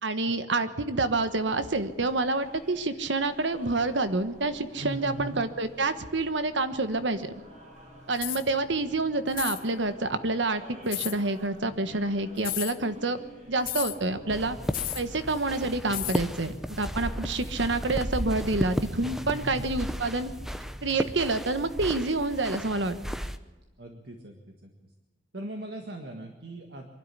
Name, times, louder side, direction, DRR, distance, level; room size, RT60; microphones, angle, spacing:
voice 1, 0.0-7.3 8.1-13.2 13.5-14.6 14.9-20.3 20.8-23.0, right 2 dB, 75° right, 10 dB, 1.3 m, -28 dB
sound 1, 0.9-19.4, equal, 40° right, 6.7 m, -51 dB
voice 2, 4.8-5.4 19.3-19.7 23.8-24.7 25.3-26.9, right 1 dB, 60° right, 3 dB, 1.7 m, -39 dB
sound 2, 8.2-8.5 9.3-9.6 10.9-11.2 12.4-12.8 13.7-14.0 14.7-15.1 15.9-16.2, left 14 dB, 50° left, 0.9 m, -32 dB
sound 3, 14.3-23.4, equal, ahead, 0.7 m, -34 dB
23.5 x 12.0 x 9.9 m, 1.2 s
head